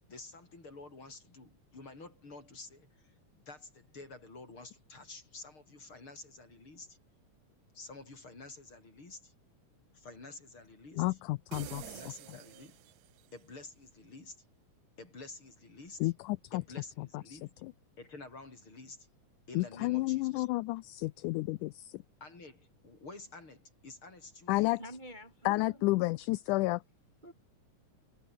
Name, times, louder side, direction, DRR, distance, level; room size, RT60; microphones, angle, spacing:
voice 1, 0.1-7.0 7.7-9.3 9.9-11.2 11.8-12.8 13.3-14.4 15.0-16.1 16.5-17.5 18.0-19.1 19.5-20.5 22.2-24.8, left 3 dB, 40° left, 6.8 m, -50 dB
voice 2, 11.0-12.0 12.3-12.4 16.0-16.6 17.0-17.7 19.5-22.0 24.5-24.8 25.5-26.8, left 20 dB, 80° left, 2.0 m, -31 dB
sound 1, 11.5-13.3, right 17 dB, 85° right, 1.5 m, -48 dB
voice 3, 24.8-25.9 27.2-27.3, equal, 15° right, 2.5 m, -48 dB
omnidirectional pair, 3.7 m